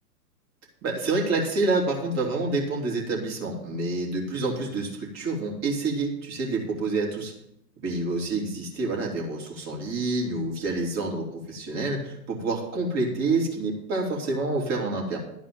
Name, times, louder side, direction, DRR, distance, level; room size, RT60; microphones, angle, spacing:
voice 1, 0.8-7.3 7.8-15.2, right 3 dB, 30° right, -1 dB, 3.0 m, -28 dB
12.0 x 4.7 x 7.6 m, 0.80 s
hypercardioid pair, 115°, 50 cm